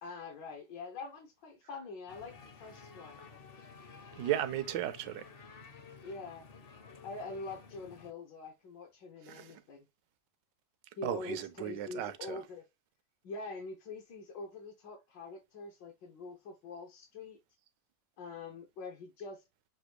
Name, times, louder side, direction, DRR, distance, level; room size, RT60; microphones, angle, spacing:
voice 1, 0.0-3.2 6.0-6.5 7.0-9.8 11.0-12.7 13.2-17.4 18.2-19.4, left 3 dB, 85° left, 1.7 m, -44 dB
sound 1, 2.1-8.1, left 5 dB, 50° left, 0.7 m, -53 dB
voice 2, 4.2-5.3 9.3-9.5 11.0-12.4, right 12 dB, 80° right, 1.2 m, -35 dB
6.8 x 2.3 x 3.0 m
omnidirectional pair, 1.9 m